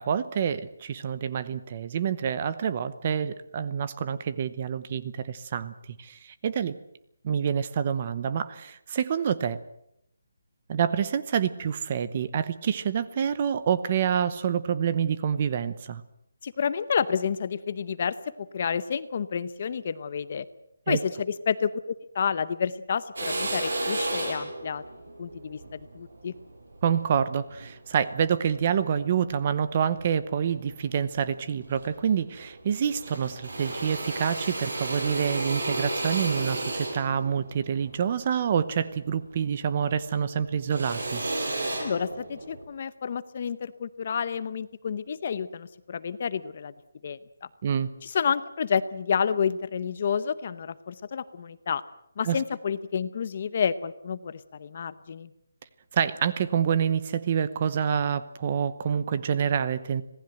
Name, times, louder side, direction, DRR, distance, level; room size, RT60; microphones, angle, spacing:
voice 1, 0.0-5.7 6.0-6.7 7.2-9.6 10.7-16.0 20.9-21.0 26.8-41.2 47.6-47.9 52.2-52.4 55.9-60.0, right 8 dB, 25° right, 14 dB, 0.8 m, -27 dB
voice 2, 16.4-20.5 20.9-24.8 25.2-26.4 41.8-46.7 47.0-47.5 48.0-51.8 52.2-55.3, left 7 dB, 30° left, 15 dB, 0.8 m, -30 dB
Drill, 23.2-27.7 28.3-29.4 29.9-30.8 31.2-31.3 31.5-32.5 32.8-39.5 39.8-42.6, right 2 dB, 70° right, 7.4 m, -33 dB
26.0 x 18.5 x 7.9 m, 0.78 s
hypercardioid pair, 180°, 0 cm